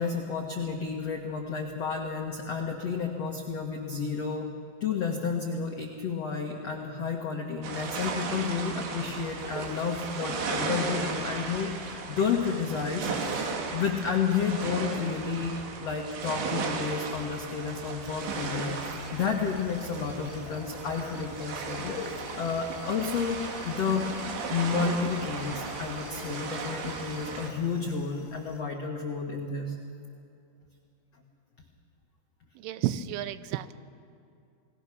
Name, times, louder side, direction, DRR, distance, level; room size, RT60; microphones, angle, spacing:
voice 1, 0.0-4.5 4.8-15.5 15.8-24.1 24.5-29.7, left 5 dB, 85° left, 1 dB, 1.4 m, -31 dB
sound 1, 7.6-27.5, right 4 dB, 70° right, 4.1 m, -36 dB
sound 2, 18.0-28.6, left 5 dB, 50° left, 2.3 m, -47 dB
voice 2, 32.6-33.7, right 12 dB, 85° right, 13 dB, 3.2 m, -31 dB
29.0 x 20.0 x 6.1 m, 2.6 s
omnidirectional pair, 5.5 m